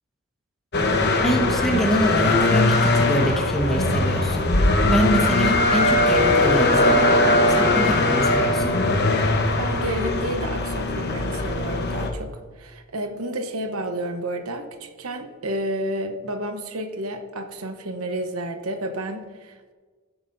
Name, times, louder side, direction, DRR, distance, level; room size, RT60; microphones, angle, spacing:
sound 1, 0.7-12.1, left 2 dB, 50° left, 1.0 m, -20 dB
voice 1, 1.2-4.5 4.8-8.8, equal, ahead, 0 dB, 1.4 m, -25 dB
voice 2, 9.6-19.7, right 1 dB, 85° right, 6 dB, 1.0 m, -31 dB
15.5 x 8.0 x 2.7 m, 1.4 s
head